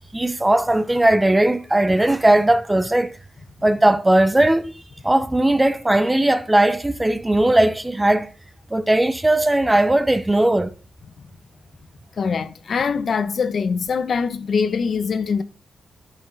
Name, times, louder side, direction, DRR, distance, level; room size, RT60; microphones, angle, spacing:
voice 1, 0.1-3.2 3.6-4.7 5.0-8.3 8.7-10.7, right 1 dB, 10° right, 0.8 m, -18 dB
voice 2, 12.2-15.4, left 5 dB, 55° left, 1.1 m, -23 dB
11.0 x 8.7 x 4.1 m
cardioid pair, 115°, 0 cm